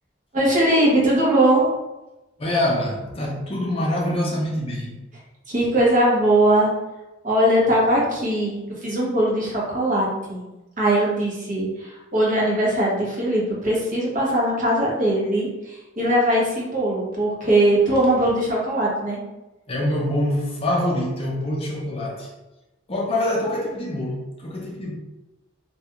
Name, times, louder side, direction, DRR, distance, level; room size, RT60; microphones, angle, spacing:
voice 1, 0.3-1.7 5.5-6.7 7.2-10.4 10.8-19.2, right 1 dB, 40° right, -4 dB, 0.7 m, -20 dB
voice 2, 2.4-5.0 19.7-22.3 22.9-24.9, left 1 dB, 30° left, -3 dB, 0.5 m, -25 dB
2.3 x 2.2 x 2.8 m, 1.0 s
head